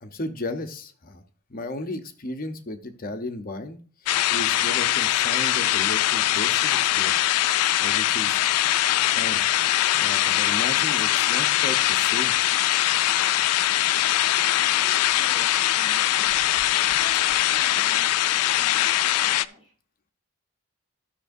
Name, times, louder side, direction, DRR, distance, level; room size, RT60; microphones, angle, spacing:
voice 1, 0.0-1.2 1.5-3.8 4.3-7.1 7.8-8.4 9.2-9.4 10.0-12.4, left 2 dB, 40° left, 6 dB, 0.8 m, -34 dB
sound 1, 4.1-19.4, left 13 dB, 90° left, 0.3 m, -22 dB
voice 2, 14.5-16.3 17.0-19.7, left 1 dB, 25° left, -2 dB, 4.6 m, -48 dB
13.0 x 6.7 x 2.6 m, 0.41 s
head